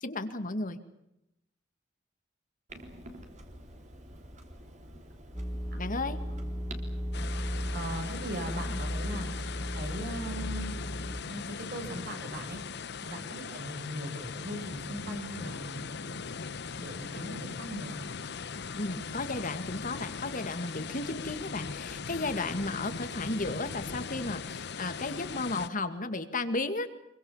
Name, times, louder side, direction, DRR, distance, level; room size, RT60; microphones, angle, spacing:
voice 1, 0.0-0.8 5.7-6.2 8.7-8.8 18.7-26.9, left 2 dB, 45° left, 9 dB, 2.2 m, -34 dB
Clock, 2.7-9.5, right 1 dB, 40° right, 3.6 m, -49 dB
sound 1, 5.3-11.2, equal, 10° right, 2.1 m, -36 dB
sound 2, 7.1-25.7, left 5 dB, 60° left, 0.9 m, -40 dB
voice 2, 7.7-10.8 11.2-12.6 13.0-16.2 16.7-18.0, equal, 55° right, 4 dB, 6.3 m, -39 dB
26.0 x 23.5 x 7.4 m, 0.84 s
head